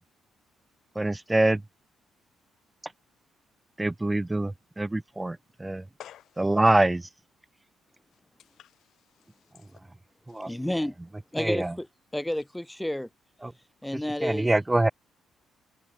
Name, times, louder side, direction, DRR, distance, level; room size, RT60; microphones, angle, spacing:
voice 1, 1.0-1.6 3.8-5.8 6.4-7.0 10.3-10.5 11.4-11.7 13.4-13.5 14.2-14.9, right 2 dB, 15° right, 0.8 m, -24 dB
voice 2, 6.0-6.5 8.4-9.8 10.3-10.5, left 11 dB, 75° left, 3.7 m, -51 dB
voice 3, 10.5-10.9 11.3-11.9 12.1-13.1 13.8-14.5, left 1 dB, 5° left, 2.5 m, -30 dB
cardioid pair, 90°, 0 cm